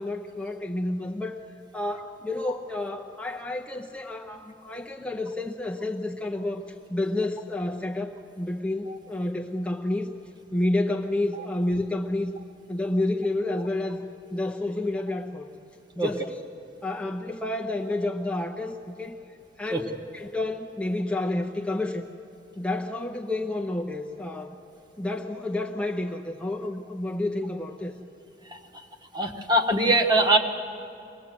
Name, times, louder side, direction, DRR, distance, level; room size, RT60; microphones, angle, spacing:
voice 1, 0.0-1.4 1.7-10.1 10.5-12.3 12.7-14.1 14.3-15.5 16.0-16.4 16.8-19.2 19.6-22.0 22.6-24.6 25.0-28.0, left 2 dB, 5° left, -1 dB, 0.7 m, -30 dB
voice 2, 29.1-30.4, right 1 dB, 25° right, 4 dB, 1.3 m, -21 dB
24.5 x 19.0 x 7.7 m, 2.7 s
head